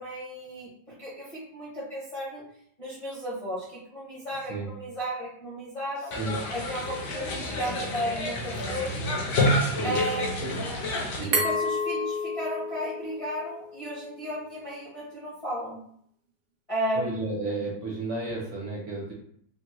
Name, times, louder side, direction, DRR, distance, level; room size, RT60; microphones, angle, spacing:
voice 1, 0.0-2.5 2.8-6.1 6.5-9.1 9.8-10.6 11.2-15.8 16.7-17.2, equal, 30° left, -7 dB, 0.6 m, -34 dB
sound 1, 6.1-11.2, left 1 dB, 65° left, 1.0 m, -29 dB
Glass, 11.3-14.1, left 1 dB, 80° right, 0.5 m, -30 dB
voice 2, 16.9-19.1, right 2 dB, 55° right, -3 dB, 1.0 m, -32 dB
3.5 x 2.1 x 2.9 m, 0.66 s
omnidirectional pair, 1.8 m